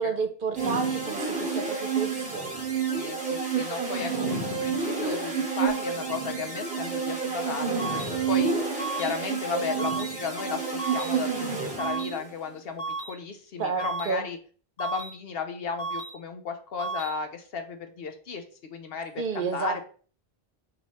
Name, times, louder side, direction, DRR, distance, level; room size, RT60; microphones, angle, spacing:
voice 1, 0.0-2.5 13.6-14.3 19.2-19.8, right 5 dB, 60° right, 6 dB, 0.9 m, -31 dB
sound 1, 0.5-12.3, right 5 dB, 10° right, 1.0 m, -29 dB
voice 2, 2.9-14.4 14.8-19.8, left 5 dB, 70° left, 6 dB, 0.9 m, -35 dB
sound 2, 7.8-8.1 8.8-9.1 9.8-10.1 10.8-11.1 11.8-12.1 12.8-13.1 13.8-14.1 14.8-15.1 15.8-16.1 16.8-17.1, right 3 dB, 90° left, 1.4 m, -33 dB
5.3 x 2.8 x 3.0 m, 0.40 s
omnidirectional pair, 1.0 m